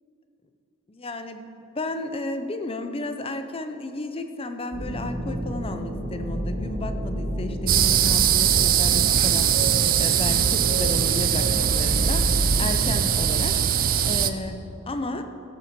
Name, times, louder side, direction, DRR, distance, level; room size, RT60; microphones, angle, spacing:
voice 1, 0.9-9.5 10.0-13.6 14.0-15.2, left 2 dB, 30° left, 8 dB, 0.6 m, -33 dB
sound 1, 4.7-13.3, equal, 60° right, 2.4 m, -30 dB
sound 2, 7.7-14.3, right 9 dB, 45° right, 0.5 m, -21 dB
16.5 x 6.9 x 5.3 m, 2.8 s
head